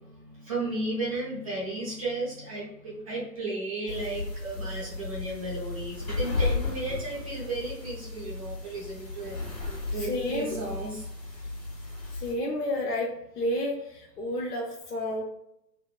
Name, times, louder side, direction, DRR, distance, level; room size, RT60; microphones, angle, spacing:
voice 1, 0.1-12.2, right 2 dB, 25° right, -6 dB, 0.5 m, -35 dB
sound 1, 3.9-12.3, left 3 dB, 90° left, 1.5 m, -34 dB
voice 2, 10.0-10.6 12.2-15.2, left 1 dB, 65° left, 0 dB, 0.6 m, -31 dB
2.8 x 2.2 x 2.2 m, 0.81 s
figure-of-eight pair, 125°, 50 cm